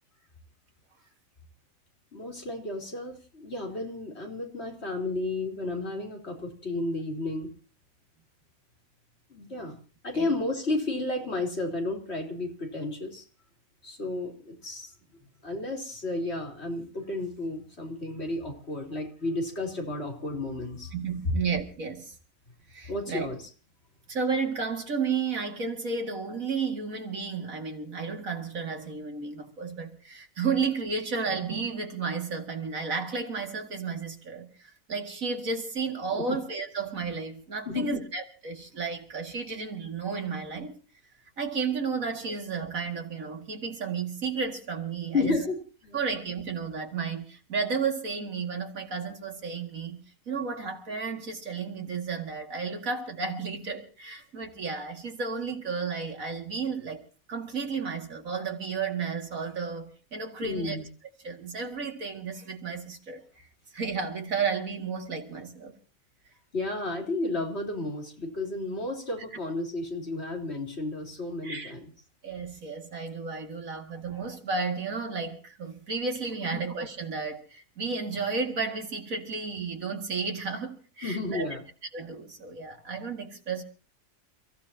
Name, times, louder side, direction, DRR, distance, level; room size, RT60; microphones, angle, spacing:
voice 1, 2.1-7.5 9.3-9.8 10.0-13.2 13.8-14.9 15.4-20.9 22.9-23.4 36.1-36.4 37.7-38.0 45.1-46.0 60.4-60.8 66.5-71.9 76.5-76.6 81.0-81.6, left 2 dB, 50° left, 4.1 m, -32 dB
voice 2, 20.9-22.1 22.7-23.3 24.1-40.8 41.4-45.4 45.9-60.8 61.2-63.2 63.7-65.7 71.4-71.7 72.2-81.5 81.9-83.6, right 5 dB, 80° right, 2.7 m, -32 dB
29.5 x 16.0 x 2.9 m
omnidirectional pair, 1.4 m